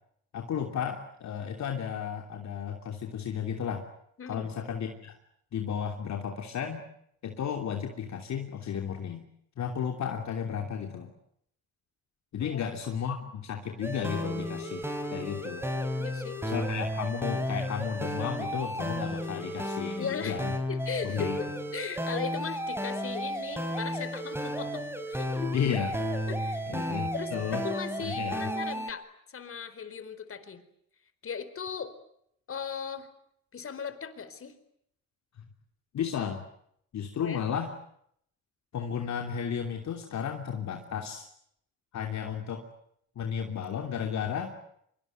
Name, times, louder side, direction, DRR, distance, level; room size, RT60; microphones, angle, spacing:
voice 1, 0.3-3.8 4.3-5.2 5.5-6.8 7.2-9.2 9.6-11.1 12.3-15.7 16.4-20.5 21.0-21.4 25.5-26.0 26.7-27.6 28.0-28.5 35.9-36.4 36.9-37.7 38.7-41.3 41.9-42.6 43.1-44.5, left 7 dB, 65° left, 3 dB, 3.1 m, -33 dB
voice 2, 4.2-4.5 12.4-12.6 16.0-16.4 20.0-20.4 20.7-24.8 25.1-25.7 26.3-26.8 27.1-30.6 31.2-31.9 32.5-33.1 33.5-34.5 37.2-37.5, left 6 dB, 45° left, 12 dB, 4.4 m, -38 dB
sound 1, 13.8-28.9, equal, 10° right, 4.6 m, -33 dB
25.0 x 24.0 x 9.3 m, 0.71 s
cardioid pair, 90°, 30 cm